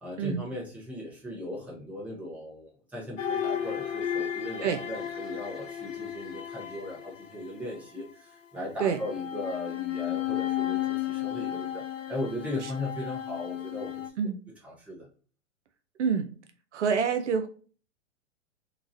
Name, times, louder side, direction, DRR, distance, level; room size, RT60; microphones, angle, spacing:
voice 1, 0.0-14.0 14.6-15.1, left 1 dB, 5° right, -4 dB, 0.7 m, -37 dB
sound 1, 3.2-7.9 8.8-14.1, left 10 dB, 85° left, 0.5 m, -34 dB
voice 2, 16.0-16.3 16.7-17.5, right 6 dB, 70° right, 8 dB, 0.5 m, -26 dB
2.9 x 2.3 x 2.6 m, 0.40 s
figure-of-eight pair, 115°, 37 cm